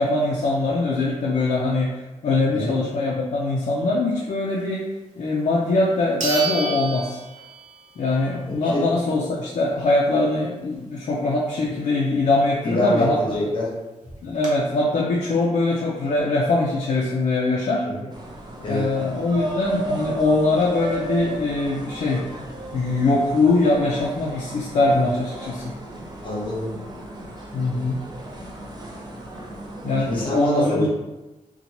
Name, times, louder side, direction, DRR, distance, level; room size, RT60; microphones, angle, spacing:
voice 1, 0.0-4.9 5.2-7.2 8.0-13.4 14.2-17.9 18.7-22.2 22.7-25.7 27.5-28.0 29.8-30.9, left 2 dB, 60° left, -4 dB, 0.4 m, -22 dB
sound 1, 5.4-5.5 6.2-8.0 8.3-8.4 13.1-13.2 13.4-13.5 14.0-14.5, right 3 dB, 80° right, 0.7 m, -30 dB
voice 2, 12.6-13.7 17.8-17.9 18.6-18.9 26.2-26.7 30.0-30.9, left 1 dB, 40° left, -5 dB, 0.9 m, -25 dB
sound 2, 18.1-30.2, right 2 dB, 35° right, 0.5 m, -35 dB
2.7 x 2.2 x 2.8 m, 1.1 s
wide cardioid pair, 170°, 13 cm